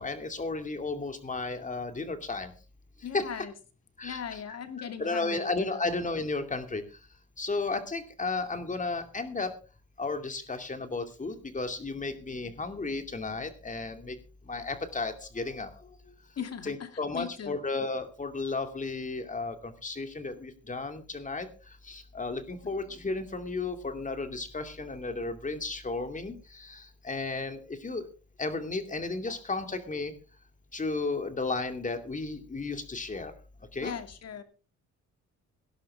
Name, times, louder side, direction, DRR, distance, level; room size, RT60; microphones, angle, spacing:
voice 1, 0.0-2.5 3.1-3.3 4.0-4.6 5.0-6.8 7.4-9.5 10.0-14.2 14.5-15.7 16.6-21.5 21.9-28.1 28.4-30.1 30.7-33.3 33.7-33.9, left 3 dB, 25° left, 8 dB, 2.5 m, -33 dB
voice 2, 3.0-3.5 4.0-5.8 16.4-17.6 33.8-34.4, left 7 dB, 55° left, 8 dB, 2.5 m, -39 dB
18.0 x 11.5 x 3.6 m, 0.33 s
cardioid pair, 90°, 30 cm